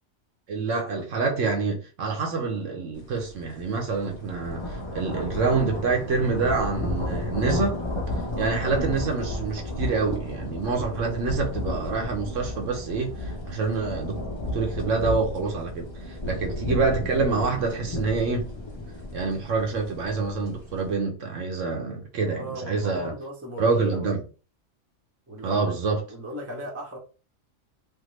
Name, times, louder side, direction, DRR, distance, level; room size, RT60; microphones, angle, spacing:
voice 1, 0.5-7.8 8.4-14.2 14.5-18.5 19.1-23.1 23.6-24.2 25.4-26.0, right 4 dB, 70° right, 1.1 m, -27 dB
sound 1, 3.1-3.3 3.7-20.9, left 1 dB, 30° left, 0.6 m, -33 dB
voice 2, 22.2-24.1 25.3-25.8 26.1-27.0, right 1 dB, 15° right, 0.6 m, -37 dB
3.5 x 2.1 x 3.1 m
omnidirectional pair, 1.4 m